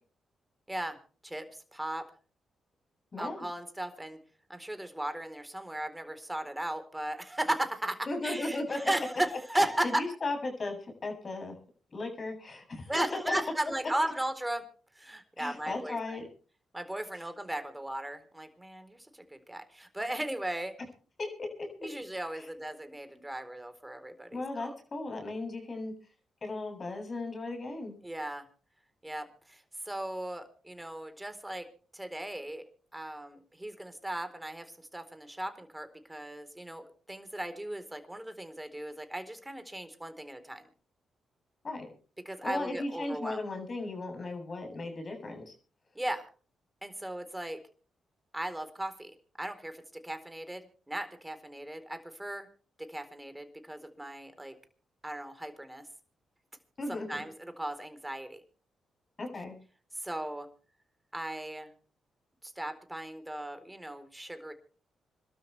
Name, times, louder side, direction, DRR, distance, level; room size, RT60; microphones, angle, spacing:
voice 1, 1.2-2.0 3.2-4.2 4.5-8.0 8.2-10.0 12.9-14.6 14.9-16.2 16.7-20.7 21.8-24.7 28.0-28.4 29.0-31.7 31.9-32.6 32.9-40.7 42.3-43.4 45.9-46.2 46.8-47.6 48.3-49.1 49.4-52.5 52.8-54.6 55.0-55.8 56.9-58.4 60.0-60.5 61.1-61.7 62.4-64.5, right 1 dB, 10° right, 9 dB, 4.1 m, -36 dB
voice 2, 3.1-3.5 8.1-8.8 9.5-11.6 11.9-12.9 13.3-13.4 15.4-16.2 17.1-17.2 21.2-21.5 22.3-22.5 24.3-25.9 26.4-27.9 41.6-41.9 42.4-45.5 56.8-57.2 59.2-59.6, left 2 dB, 45° left, 3 dB, 7.9 m, -36 dB
26.5 x 12.5 x 3.4 m, 0.39 s
supercardioid pair, 50°, 0 cm